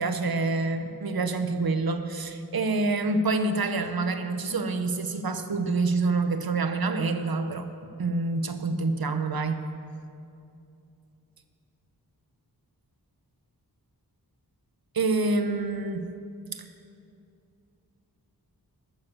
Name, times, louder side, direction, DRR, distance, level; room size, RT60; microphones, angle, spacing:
voice 1, 0.0-7.7 8.0-9.6 14.9-16.1 16.5-16.7, right 3 dB, 65° right, 8 dB, 0.9 m, -27 dB
14.0 x 6.8 x 7.2 m, 2.5 s
wide cardioid pair, 85°, 38 cm